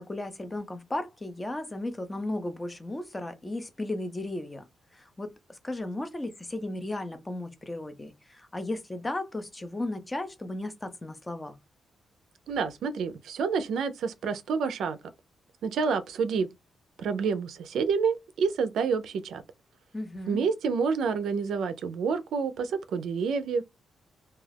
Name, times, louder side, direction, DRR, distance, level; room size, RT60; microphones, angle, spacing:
voice 1, 0.0-4.6 4.9-11.5 19.9-20.4, left 1 dB, 15° left, 0.4 m, -35 dB
voice 2, 12.5-15.0 15.6-16.5 17.0-19.4 20.3-23.6, right 5 dB, 70° right, 0.4 m, -28 dB
2.3 x 2.3 x 3.3 m
wide cardioid pair, 170°, 0 cm